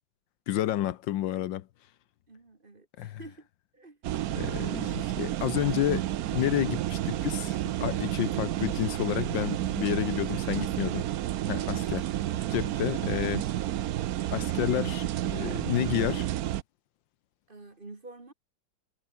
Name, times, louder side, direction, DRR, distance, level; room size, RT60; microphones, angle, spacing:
voice 1, 0.5-1.7 3.0-3.2 4.4-11.0 11.5-12.0 12.5-13.5 14.3-16.3, left 13 dB, 75° left, 1.5 m, -30 dB
voice 2, 2.3-3.5 3.7-4.0 10.6-11.1 11.7-12.2 17.5-18.3, right 3 dB, 25° right, 2.0 m, -49 dB
sound 1, 4.0-16.6, right 13 dB, 65° right, 0.9 m, -31 dB
omnidirectional pair, 2.1 m